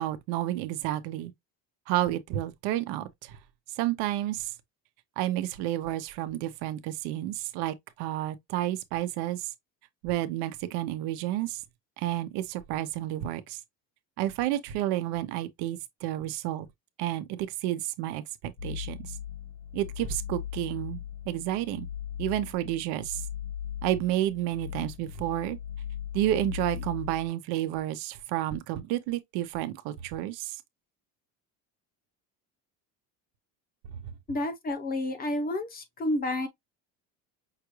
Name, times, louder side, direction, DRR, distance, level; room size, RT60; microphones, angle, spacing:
voice 1, 0.0-1.3 1.9-3.4 3.8-4.5 5.2-9.5 10.0-11.6 12.0-13.6 14.2-16.7 17.0-19.1 19.7-21.0 21.3-21.9 22.2-23.2 23.8-25.6 26.1-30.6, right 14 dB, 85° right, 0.8 m, -30 dB
sound 1, 18.6-27.3, left 9 dB, 65° left, 1.7 m, -38 dB
voice 2, 34.3-36.5, left 1 dB, 25° left, 0.7 m, -30 dB
5.7 x 2.4 x 3.0 m
cardioid pair, 155°, 38 cm